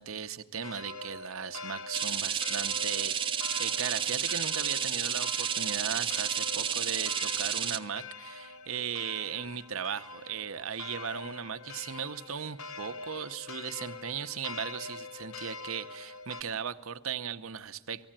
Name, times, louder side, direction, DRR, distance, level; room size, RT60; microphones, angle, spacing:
voice 1, 0.0-18.1, right 7 dB, 75° right, 9 dB, 0.8 m, -37 dB
sound 1, 0.6-16.4, left 4 dB, 80° left, 0.9 m, -44 dB
sound 2, 1.9-7.8, right 8 dB, 25° right, 0.8 m, -31 dB
19.5 x 15.0 x 8.9 m, 1.1 s
head